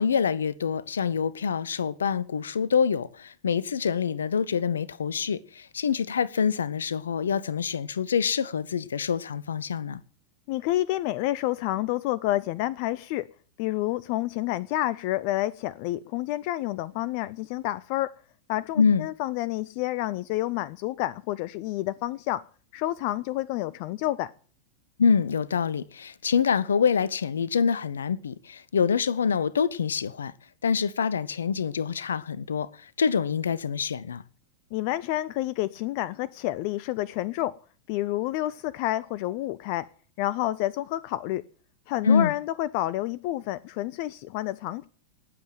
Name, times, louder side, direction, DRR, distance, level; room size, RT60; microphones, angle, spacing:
voice 1, 0.0-10.0 18.8-19.1 25.0-30.3 30.6-34.2 42.0-42.3, left 6 dB, 70° left, 0.8 m, -26 dB
voice 2, 10.5-13.3 13.6-18.1 18.5-22.4 22.7-24.3 34.7-37.5 37.9-39.9 40.2-41.4 41.9-44.9, left 15 dB, 45° left, 0.6 m, -29 dB
18.5 x 7.8 x 7.7 m
figure-of-eight pair, 90°, 0 cm